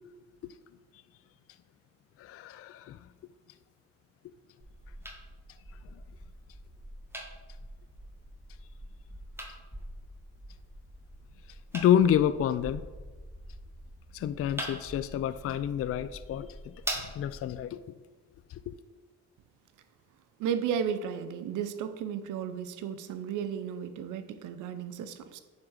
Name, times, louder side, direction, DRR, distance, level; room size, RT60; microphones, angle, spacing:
voice 1, 2.2-3.0 11.7-12.8 14.1-17.8 18.5-18.7, left 10 dB, 50° left, 0.4 m, -28 dB
sound 1, 4.6-17.6, right 1 dB, 10° right, 1.4 m, -43 dB
voice 2, 20.4-25.4, right 8 dB, 85° right, 0.7 m, -34 dB
9.4 x 3.7 x 6.3 m
cardioid pair, 90°, 30 cm